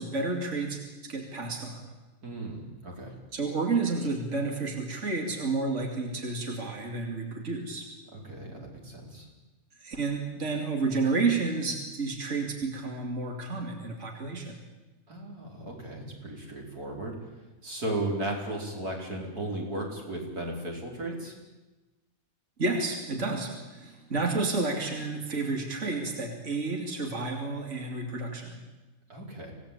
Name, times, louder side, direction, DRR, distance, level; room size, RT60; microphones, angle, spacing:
voice 1, 0.0-1.8 3.3-7.9 9.8-14.6 22.6-28.6, right 3 dB, 50° right, 2 dB, 3.0 m, -31 dB
voice 2, 2.2-3.1 8.1-9.3 15.1-17.2 17.6-21.3 29.1-29.5, right 1 dB, 90° right, 0 dB, 5.2 m, -35 dB
26.0 x 17.5 x 8.7 m, 1.1 s
omnidirectional pair, 1.6 m